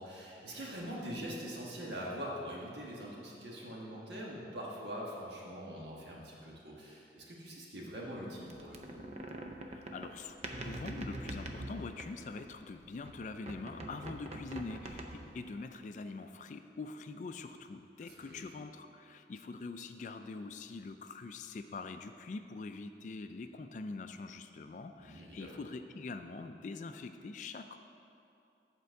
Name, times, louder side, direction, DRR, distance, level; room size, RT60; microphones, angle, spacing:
voice 1, 0.0-9.0 18.0-18.5 24.9-25.6, equal, 80° right, -3 dB, 1.5 m, -43 dB
sound 1, 8.5-12.7 13.0-15.5, right 1 dB, 35° right, 0.5 m, -44 dB
voice 2, 9.7-10.4 10.6-27.8, left 3 dB, 45° left, 8 dB, 0.3 m, -44 dB
8.1 x 4.4 x 6.3 m, 2.6 s
head